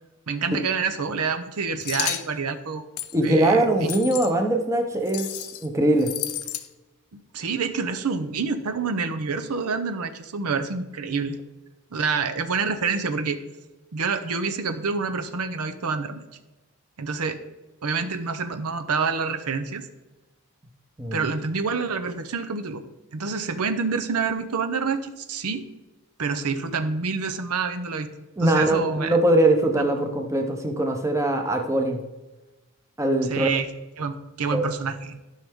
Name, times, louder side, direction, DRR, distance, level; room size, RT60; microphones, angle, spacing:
voice 1, 0.3-2.8 3.2-3.9 7.1-11.4 11.9-13.4 13.9-16.2 17.0-17.4 17.8-19.9 21.1-22.8 23.1-25.7 26.2-28.1 28.4-29.2 33.3-33.7 34.0-35.2, right 5 dB, 85° right, 9 dB, 0.7 m, -27 dB
sound 1, 1.8-2.3 3.0-3.2 3.9-4.3 5.1-5.7 6.0-6.7, left 13 dB, 75° left, 0.6 m, -31 dB
voice 2, 3.1-5.3 5.6-6.1 21.0-21.2 28.4-32.0 33.0-33.5 34.5-34.7, right 1 dB, 15° right, 3 dB, 0.8 m, -22 dB
12.5 x 5.6 x 3.6 m, 1.1 s
head